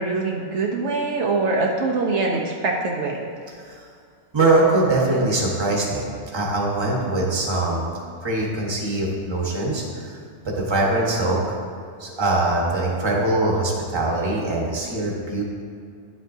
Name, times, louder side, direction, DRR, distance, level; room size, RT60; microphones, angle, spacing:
voice 1, 0.0-3.2, right 3 dB, 70° right, -1 dB, 1.0 m, -23 dB
voice 2, 4.3-6.1 6.3-7.8 8.2-10.2 10.4-11.6 12.0-15.4, right 2 dB, 25° right, -3 dB, 1.1 m, -22 dB
10.5 x 7.4 x 2.7 m, 2.2 s
omnidirectional pair, 1.2 m